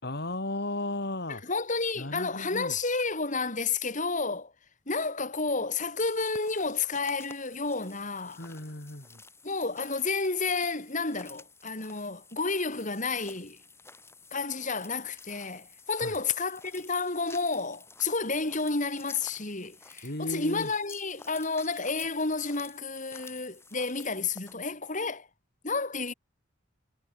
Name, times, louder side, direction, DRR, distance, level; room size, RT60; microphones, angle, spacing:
voice 1, 0.0-1.4 2.0-2.7 8.4-9.2 16.0-16.1 20.0-20.7, left 1 dB, 55° left, 4.3 m, -35 dB
voice 2, 1.3-4.5 4.9-8.5 9.4-13.6 14.3-25.3 25.6-26.1, left 4 dB, 40° left, 3.8 m, -31 dB
sound 1, 6.0-24.5, left 3 dB, 15° left, 7.7 m, -52 dB
head